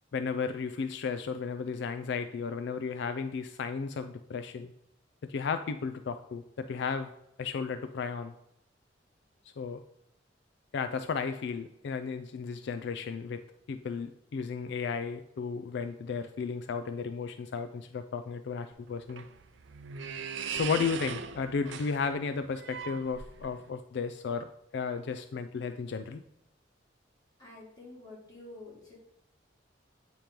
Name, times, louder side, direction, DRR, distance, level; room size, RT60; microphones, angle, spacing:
voice 1, 0.1-4.7 5.3-7.1 7.4-8.3 9.6-9.8 10.7-13.4 13.7-19.3 20.5-26.2, left 5 dB, 65° left, 9 dB, 0.4 m, -34 dB
sound 1, 18.7-23.7, right 7 dB, 75° right, 0.5 m, -40 dB
voice 2, 27.4-29.0, left 2 dB, 20° left, -5 dB, 2.7 m, -48 dB
8.7 x 3.0 x 5.1 m, 0.86 s
head